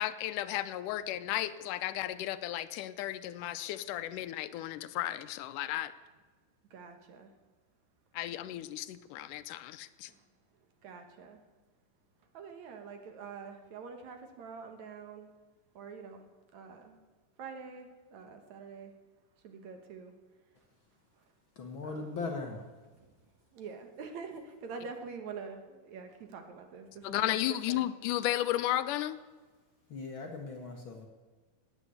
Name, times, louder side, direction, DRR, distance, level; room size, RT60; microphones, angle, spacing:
voice 1, 0.0-5.9 8.2-10.1 27.0-29.2, left 13 dB, 80° left, 13 dB, 2.1 m, -34 dB
voice 2, 6.7-7.3 10.1-10.2 10.8-11.4 12.3-15.3 15.7-16.3 16.5-17.0 17.4-18.9 19.4-20.1 21.1-21.2 21.8-22.3 23.5-27.4 27.7-27.8, right 5 dB, 65° right, 6 dB, 2.7 m, -46 dB
voice 3, 21.6-22.6 29.9-31.1, left 3 dB, 50° left, 3 dB, 1.6 m, -39 dB
18.5 x 9.0 x 7.9 m, 1.3 s
omnidirectional pair, 3.7 m